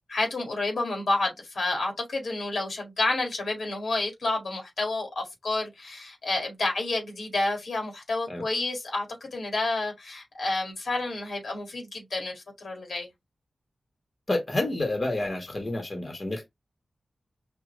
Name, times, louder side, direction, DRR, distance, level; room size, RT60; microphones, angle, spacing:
voice 1, 0.1-13.1, left 2 dB, 80° left, 2.0 m, -30 dB
voice 2, 14.3-16.5, left 2 dB, 40° left, 1.5 m, -29 dB
5.1 x 2.7 x 3.1 m
cardioid pair, 50°, 0 cm